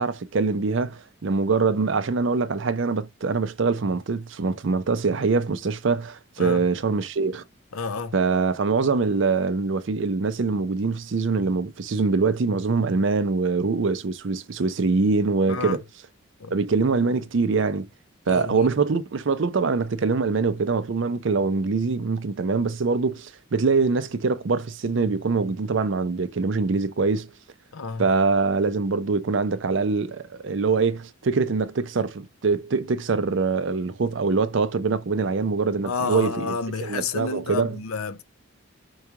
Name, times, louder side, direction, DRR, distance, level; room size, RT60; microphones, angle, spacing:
voice 1, 0.0-7.4 8.1-15.8 16.5-17.9 18.3-27.3 28.0-36.5 36.8-37.8, right 4 dB, 60° right, 0.5 m, -24 dB
voice 2, 7.7-8.1 15.5-15.8 16.4-16.5 18.3-18.7 27.7-28.1 35.8-38.2, left 4 dB, 85° left, 0.7 m, -30 dB
4.6 x 2.3 x 2.8 m
head